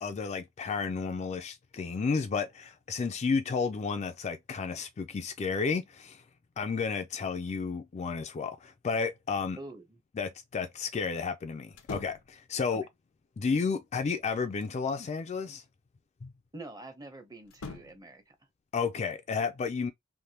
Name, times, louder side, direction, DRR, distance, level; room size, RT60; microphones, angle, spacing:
voice 1, 0.0-6.2 6.6-9.6 10.2-12.9 13.4-15.6 16.2-16.3 18.7-19.9, left 5 dB, 30° left, 0.3 m, -32 dB
voice 2, 9.6-10.0 16.5-18.3, right 2 dB, 20° right, 0.6 m, -46 dB
sound 1, 11.7-12.4 14.0-14.8 17.4-18.1, left 3 dB, 80° left, 0.6 m, -45 dB
3.3 x 2.1 x 2.7 m
head